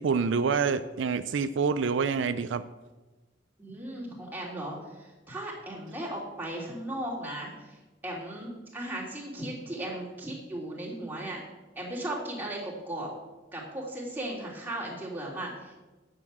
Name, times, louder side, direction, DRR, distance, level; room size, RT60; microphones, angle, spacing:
voice 1, 0.0-2.6, right 5 dB, 70° right, 11 dB, 0.4 m, -27 dB
voice 2, 3.6-11.4 11.7-13.1 13.5-15.7, right 1 dB, 10° right, -4 dB, 3.1 m, -37 dB
10.5 x 6.7 x 7.6 m, 1.2 s
head